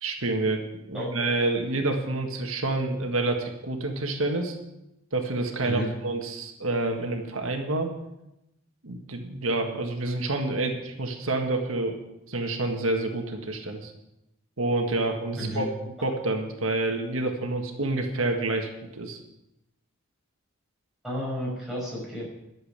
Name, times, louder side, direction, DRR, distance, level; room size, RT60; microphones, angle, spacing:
voice 1, 0.0-4.6 5.1-7.9 8.8-12.0 12.3-13.9 14.6-15.7 16.0-19.2, right 2 dB, 80° right, 4 dB, 1.7 m, -28 dB
voice 2, 0.9-1.3 5.6-5.9 15.4-15.6 21.0-22.3, equal, ahead, -6 dB, 6.0 m, -32 dB
11.5 x 7.7 x 8.7 m, 0.90 s
head